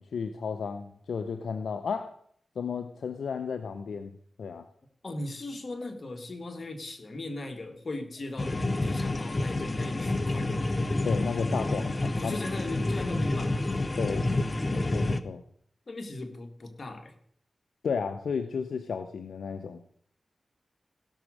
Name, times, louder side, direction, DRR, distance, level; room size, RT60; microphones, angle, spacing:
voice 1, 0.0-2.1 2.6-4.1 4.4-4.7 11.0-12.4 14.0-14.3 14.7-15.4 17.8-19.9, left 5 dB, 90° left, 8 dB, 0.6 m, -33 dB
voice 2, 5.0-8.6 8.8-10.8 12.1-13.8 15.9-17.2, left 2 dB, 60° left, 6 dB, 1.9 m, -38 dB
sound 1, 8.4-15.2, left 2 dB, 40° left, 0.9 m, -29 dB
16.5 x 6.3 x 6.4 m, 0.64 s
cardioid pair, 40°, 0 cm